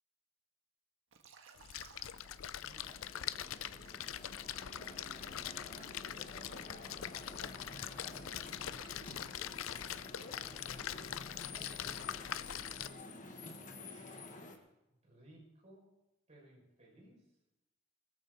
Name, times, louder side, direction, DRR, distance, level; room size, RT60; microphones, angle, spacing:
Liquid, 1.1-3.1 3.6-10.6, right 4 dB, 75° right, 1.7 m, -62 dB
Splash splatter, 1.6-12.9, left 10 dB, 90° left, 0.6 m, -43 dB
sound 1, 2.0-14.6, left 2 dB, 40° left, 1.7 m, -50 dB
voice 1, 2.6-5.6 6.4-9.9 10.8-11.1 11.8-12.9 13.7-15.9 16.3-17.3, right 1 dB, 35° right, -3 dB, 6.7 m, -63 dB
20.5 x 14.0 x 4.3 m, 0.95 s
head